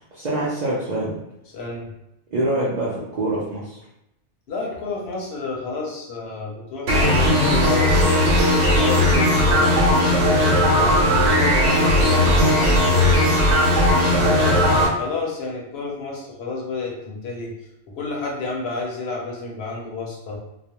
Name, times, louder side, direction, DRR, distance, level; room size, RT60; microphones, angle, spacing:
voice 1, 0.1-1.1 2.3-3.8, right 1 dB, 55° right, -7 dB, 0.5 m, -25 dB
voice 2, 1.5-1.9 4.5-8.2 8.7-9.8 10.3-13.3 14.0-17.5 17.9-20.4, left 3 dB, 65° left, -2 dB, 0.8 m, -30 dB
sound 1, 6.9-14.9, left 1 dB, 90° right, 1.0 m, -17 dB
2.3 x 2.1 x 2.8 m, 0.85 s
omnidirectional pair, 1.2 m